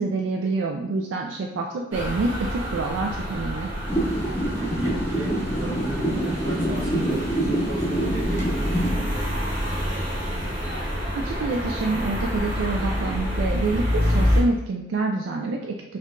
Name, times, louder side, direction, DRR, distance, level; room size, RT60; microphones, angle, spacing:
voice 1, 0.0-3.7 11.1-15.7, right 3 dB, 75° right, 1 dB, 0.3 m, -27 dB
sound 1, 1.9-14.4, equal, 10° right, 1.2 m, -27 dB
sound 2, 3.9-8.9, right 1 dB, 15° left, 0.6 m, -26 dB
voice 2, 4.1-9.6, right 2 dB, 50° right, -6 dB, 1.0 m, -35 dB
4.4 x 2.3 x 2.5 m, 0.88 s
head